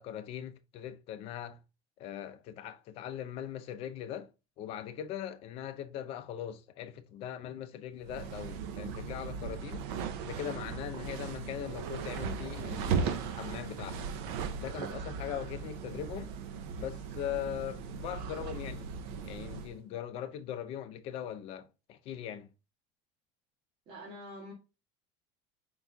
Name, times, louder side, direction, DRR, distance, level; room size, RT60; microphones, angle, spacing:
voice 1, 0.0-1.6 2.0-4.3 4.6-9.9 10.2-14.1 14.5-16.3 16.7-18.9 19.2-22.5, left 10 dB, 50° left, 0.6 m, -40 dB
sound 1, 8.0-19.8, right 6 dB, 80° right, 0.6 m, -37 dB
voice 2, 12.1-12.4 23.9-24.5, left 1 dB, 45° right, 1.6 m, -46 dB
4.6 x 4.1 x 2.3 m
cardioid pair, 160°, 13 cm